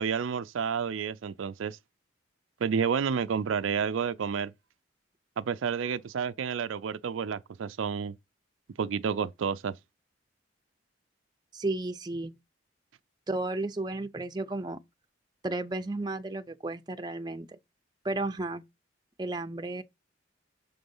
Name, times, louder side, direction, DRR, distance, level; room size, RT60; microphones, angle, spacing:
voice 1, 0.0-1.8 2.6-4.5 5.4-8.2 8.8-9.7, right 6 dB, 85° right, 0.4 m, -30 dB
voice 2, 11.5-12.3 13.3-14.8 15.4-17.5 18.0-18.6 19.2-19.8, right 2 dB, 20° right, 0.6 m, -33 dB
7.0 x 3.9 x 5.4 m
head